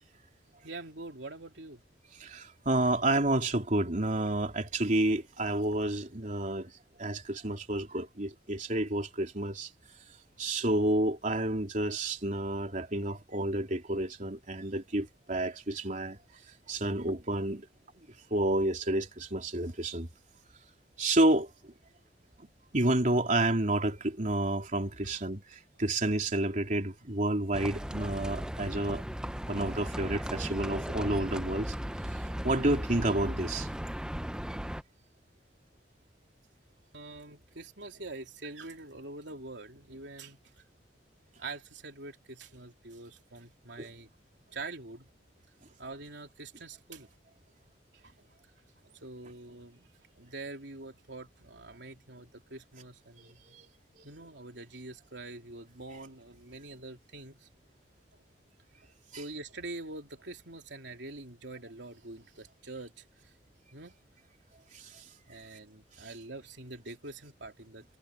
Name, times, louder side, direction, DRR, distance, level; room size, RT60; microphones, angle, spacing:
voice 1, 0.6-1.8 25.0-25.2 36.9-40.4 41.4-44.1 44.5-45.1 45.8-47.1 47.9-48.3 48.8-49.9 50.2-53.6 54.0-57.5 58.1-58.2 58.8-63.3 63.7-64.0 65.3-67.8, right 2 dB, 75° right, 3.3 m, -45 dB
voice 2, 2.2-6.7 7.0-9.7 10.4-16.2 16.7-17.7 18.3-20.1 21.0-21.5 22.7-25.4 25.8-29.0 29.5-31.7 32.4-33.7 43.8-43.9, right 1 dB, 45° right, 3.4 m, -29 dB
Livestock farm animals working animals, 27.5-34.8, equal, 5° right, 0.7 m, -36 dB
head